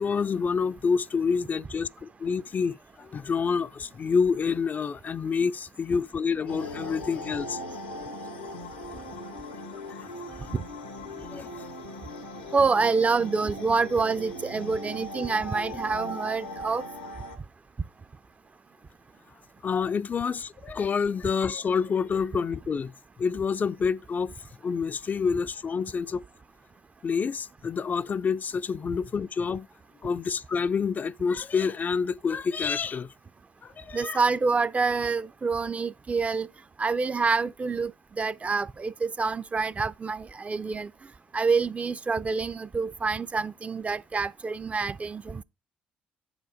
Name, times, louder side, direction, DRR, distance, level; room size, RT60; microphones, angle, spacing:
voice 1, 0.0-7.6 10.0-10.1 11.1-11.6 19.6-22.9 23.2-24.3 24.6-26.2 27.0-29.7 30.0-33.1 33.6-34.2, left 5 dB, 40° left, 0.4 m, -28 dB
sound 1, 6.5-17.4, left 1 dB, 90° left, 1.0 m, -39 dB
voice 2, 12.5-16.8 33.9-36.5 36.8-37.9 38.2-40.9 41.3-45.4, right 4 dB, 30° right, 0.4 m, -27 dB
8.8 x 5.1 x 5.0 m
figure-of-eight pair, 45°, 5 cm